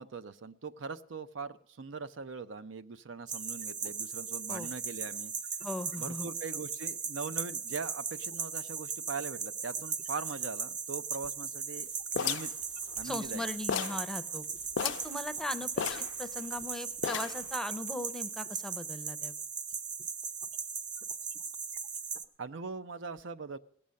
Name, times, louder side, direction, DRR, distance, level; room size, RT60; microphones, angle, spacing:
voice 1, 0.0-5.3 6.0-11.9 12.2-12.5 13.0-13.5 22.4-23.6, right 4 dB, 80° right, 13 dB, 0.6 m, -41 dB
sound 1, 3.3-22.2, right 6 dB, 40° right, 0.7 m, -38 dB
voice 2, 5.6-6.3 13.0-14.4 14.8-19.4, left 1 dB, 5° left, 10 dB, 0.5 m, -38 dB
sound 2, 12.2-13.4 13.7-14.1 14.4-14.5 14.7-15.1 15.8-16.6 17.0-17.5, left 7 dB, 85° left, 0.5 m, -34 dB
18.0 x 7.0 x 6.3 m, 0.62 s
head